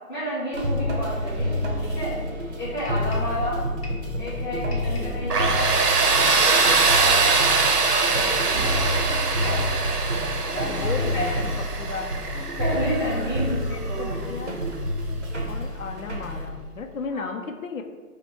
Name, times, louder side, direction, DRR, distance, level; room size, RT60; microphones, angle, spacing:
voice 1, 0.1-2.1 2.6-3.6 4.2-5.6 6.1-9.0 9.4-9.7 10.8-11.4 12.6-14.5 17.1-17.3, equal, 15° left, -12 dB, 1.3 m, -31 dB
sound 1, 0.5-16.5, equal, 50° right, 0.7 m, -28 dB
sound 2, 2.8-3.4 3.8-4.1 4.7-5.2 5.7-6.0 6.6-7.1 7.6-7.8 8.5-9.0 9.4-9.7, left 1 dB, 40° left, 1.2 m, -44 dB
voice 2, 3.1-3.8 4.7-5.4 10.5-11.5 11.8-12.1 13.0-13.6 14.0-14.6 15.5-17.8, left 5 dB, 60° left, 5 dB, 0.6 m, -35 dB
Tools, 5.3-14.1, right 4 dB, 90° right, 0.8 m, -23 dB
5.5 x 2.2 x 4.4 m, 1.5 s
hypercardioid pair, 180°, 45 cm